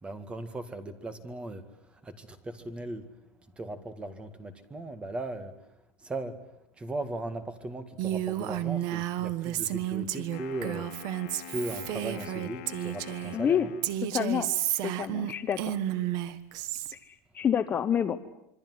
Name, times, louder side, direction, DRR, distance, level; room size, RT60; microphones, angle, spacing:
voice 1, 0.0-3.2 3.6-6.5 6.7-13.7, right 2 dB, 10° right, 2.0 m, -38 dB
Female speech woman speaking, 8.0-13.4 13.8-16.9, right 12 dB, 50° right, 1.5 m, -32 dB
Wind instrument woodwind instrument, 10.2-14.2, left 13 dB, 70° left, 2.3 m, -45 dB
voice 2, 13.3-13.7 14.1-14.5 14.8-15.7 17.0-18.2, left 8 dB, 20° left, 1.0 m, -28 dB
27.0 x 24.0 x 7.9 m
supercardioid pair, 160°, 9 cm